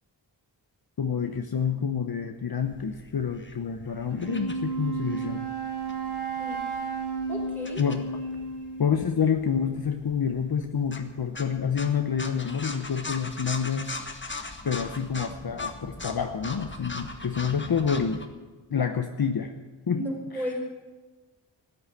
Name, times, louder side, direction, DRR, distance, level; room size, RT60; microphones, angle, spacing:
voice 1, 1.0-5.5 7.8-8.0 8.8-13.9 14.6-18.2 18.7-19.5 19.9-20.0 20.3-20.4, left 7 dB, 55° left, 6 dB, 1.0 m, -28 dB
sound 1, 2.7-18.3, left 3 dB, 25° left, 1.5 m, -41 dB
Wind instrument woodwind instrument, 4.1-9.0, right 4 dB, 65° right, 5.7 m, -32 dB
voice 2, 7.3-7.8 19.9-20.7, equal, 5° left, -1 dB, 5.0 m, -34 dB
14.0 x 9.7 x 9.7 m, 1.3 s
wide cardioid pair, 85°, 45 cm